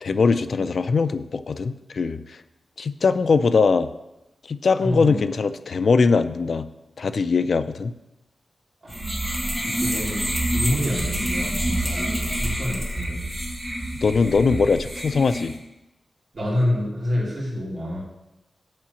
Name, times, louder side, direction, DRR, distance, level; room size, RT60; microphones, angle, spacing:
voice 1, 0.0-2.4 2.8-3.9 4.4-6.7 7.0-7.9 14.0-15.6, left 4 dB, 55° left, 11 dB, 0.4 m, -21 dB
voice 2, 4.8-5.2 8.8-9.0 9.6-13.2 16.3-18.0, left 1 dB, 35° right, -7 dB, 3.3 m, -27 dB
sound 1, 8.9-15.5, right 1 dB, 10° right, 1.3 m, -27 dB
7.5 x 4.8 x 7.0 m, 0.95 s
wide cardioid pair, 180°, 0 cm